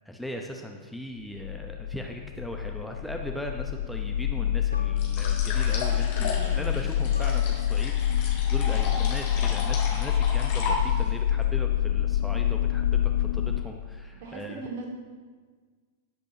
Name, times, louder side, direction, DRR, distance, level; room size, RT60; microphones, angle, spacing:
voice 1, 0.0-14.6, equal, ahead, 1 dB, 0.9 m, -39 dB
sound 1, 1.3-13.6, left 10 dB, 65° left, 0.4 m, -26 dB
sound 2, 4.7-7.8, left 2 dB, 90° left, 0.8 m, -45 dB
sound 3, 5.0-11.2, left 3 dB, 50° left, 3.2 m, -35 dB
voice 2, 6.1-7.2 8.6-8.9 14.2-14.9, right 2 dB, 50° right, -3 dB, 3.0 m, -40 dB
18.5 x 8.1 x 2.9 m, 1.5 s
figure-of-eight pair, 95°, 0 cm